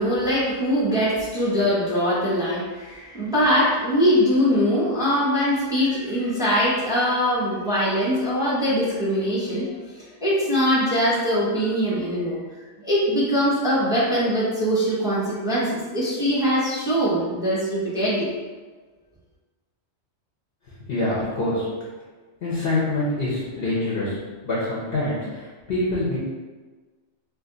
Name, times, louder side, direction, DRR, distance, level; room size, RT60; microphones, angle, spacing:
voice 1, 0.0-9.7 10.2-12.4 12.8-18.3, equal, 5° right, -8 dB, 0.8 m, -22 dB
voice 2, 20.9-21.7 22.4-24.2 24.4-26.2, left 2 dB, 55° left, -7 dB, 0.9 m, -25 dB
2.6 x 2.5 x 3.8 m, 1.4 s
omnidirectional pair, 1.3 m